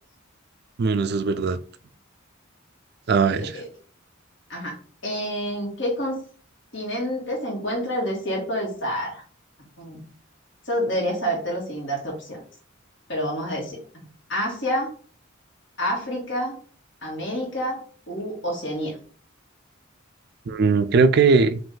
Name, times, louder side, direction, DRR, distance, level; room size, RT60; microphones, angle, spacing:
voice 1, 0.8-1.6 3.1-3.6 20.5-21.6, right 4 dB, 50° right, 12 dB, 0.4 m, -19 dB
voice 2, 5.0-6.2 6.7-9.2 9.8-10.0 10.7-12.4 13.1-13.8 14.3-14.9 15.8-16.5 17.0-19.0, equal, 60° left, -2 dB, 1.8 m, -28 dB
5.1 x 2.6 x 3.8 m, 0.43 s
head